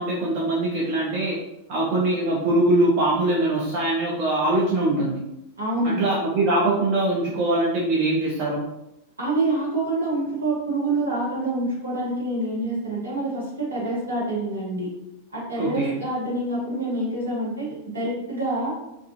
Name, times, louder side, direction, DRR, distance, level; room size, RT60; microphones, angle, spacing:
voice 1, 0.0-1.4 1.7-5.2 5.8-8.6 15.6-15.9, right 2 dB, 45° right, -4 dB, 0.5 m, -22 dB
voice 2, 5.6-6.0 9.2-14.9 15.3-18.7, right 2 dB, 75° right, -5 dB, 1.0 m, -26 dB
2.4 x 2.3 x 2.4 m, 0.87 s
figure-of-eight pair, 90°, 0 cm